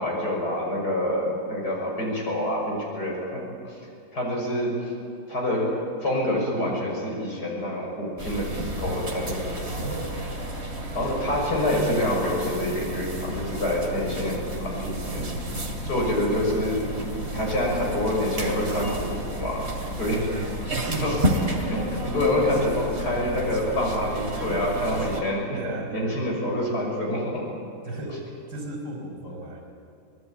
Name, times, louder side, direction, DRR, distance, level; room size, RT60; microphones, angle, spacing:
voice 1, 0.0-3.8 4.1-4.9 5.3-5.7 6.0-9.6 10.9-15.3 15.8-16.9 17.3-21.2 21.6-25.6 25.9-27.3, left 1 dB, 55° left, -1 dB, 6.7 m, -27 dB
sound 1, 8.2-25.2, right 1 dB, 35° right, 3.1 m, -31 dB
voice 2, 9.7-10.2 20.3-21.1 25.6-26.2 27.8-28.2 28.5-29.6, right 2 dB, 60° right, 2 dB, 5.5 m, -35 dB
25.5 x 19.5 x 8.8 m, 2.6 s
omnidirectional pair, 2.1 m